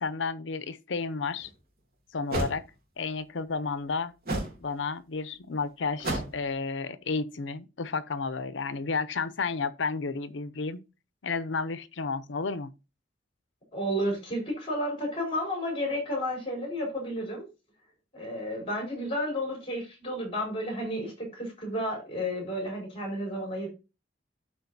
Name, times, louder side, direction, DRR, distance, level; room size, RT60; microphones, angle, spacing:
voice 1, 0.0-1.5 2.1-2.6 3.0-4.1 4.6-10.8 11.2-12.7, left 4 dB, 85° left, 0.7 m, -32 dB
sound 1, 1.4-1.5 2.3-2.6 4.3-4.6 6.0-6.4, right 1 dB, 55° right, 2.7 m, -30 dB
voice 2, 13.7-17.5 18.1-23.7, equal, 30° left, 4.7 m, -32 dB
12.5 x 4.5 x 2.7 m
head